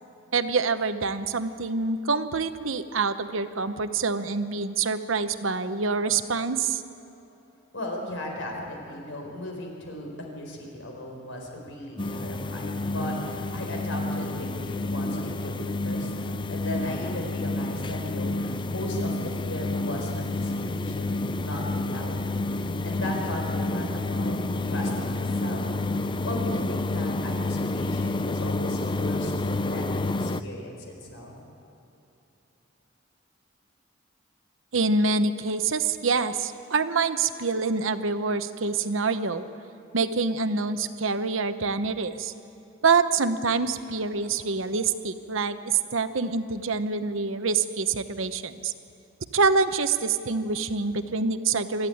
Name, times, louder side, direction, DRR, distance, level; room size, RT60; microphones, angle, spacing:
voice 1, 0.3-6.8 34.7-39.4 39.9-42.3 42.8-48.7 49.3-51.9, right 4 dB, 85° right, 10 dB, 0.9 m, -26 dB
voice 2, 7.7-22.4 22.8-26.0 26.2-31.4, left 1 dB, 80° left, 1 dB, 4.4 m, -37 dB
sound 1, 12.0-30.4, left 2 dB, 25° left, 0.5 m, -29 dB
25.0 x 14.0 x 9.4 m, 2.9 s
head